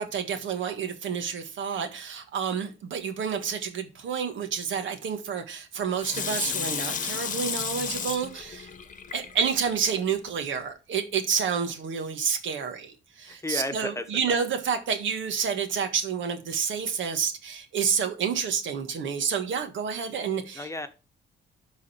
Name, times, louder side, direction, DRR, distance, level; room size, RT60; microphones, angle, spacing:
voice 1, 0.0-8.7 9.1-20.7, right 6 dB, 75° right, 1.6 m, -29 dB
Water tap faucet / Sink (filling or washing), 6.0-9.8 10.3-10.4, left 6 dB, 40° left, 1.0 m, -33 dB
voice 2, 13.2-14.3 20.5-20.9, left 2 dB, 15° left, 1.2 m, -33 dB
12.0 x 4.1 x 4.3 m
cardioid pair, 90°, 20 cm